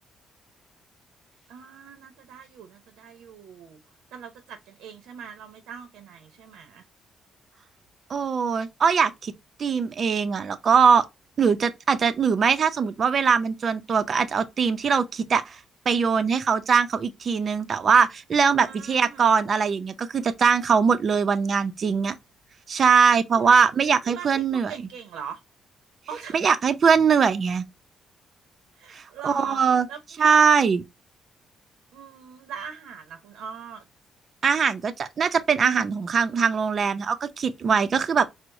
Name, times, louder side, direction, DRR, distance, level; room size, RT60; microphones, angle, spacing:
voice 1, 1.5-3.8 4.1-6.9 18.6-19.3 23.4-23.7 24.0-25.4 26.1-26.4 28.7-30.2 31.9-33.8, right 7 dB, 90° right, 0.7 m, -41 dB
voice 2, 8.1-9.3 9.6-11.0 11.4-15.6 15.9-22.2 22.7-24.7 26.3-27.6 28.9-29.9 30.2-30.8 34.4-38.3, right 6 dB, 50° right, 0.5 m, -21 dB
4.6 x 2.0 x 2.5 m
cardioid pair, 90°, 0 cm